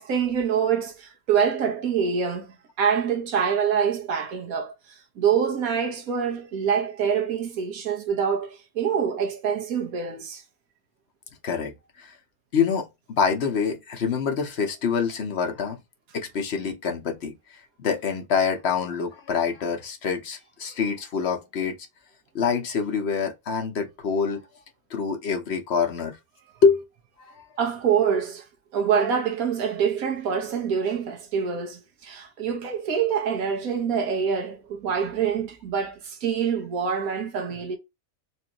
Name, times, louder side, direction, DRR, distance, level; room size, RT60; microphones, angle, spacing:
voice 1, 0.0-2.5 2.8-4.7 5.2-10.4 27.6-28.4 28.7-37.8, right 7 dB, 70° right, 1.4 m, -25 dB
voice 2, 11.4-12.2 12.5-15.8 16.1-21.8 22.3-24.4 24.9-26.2 26.6-26.8 27.2-27.4, left 6 dB, 50° left, 1.0 m, -26 dB
4.5 x 2.7 x 2.9 m
omnidirectional pair, 1.6 m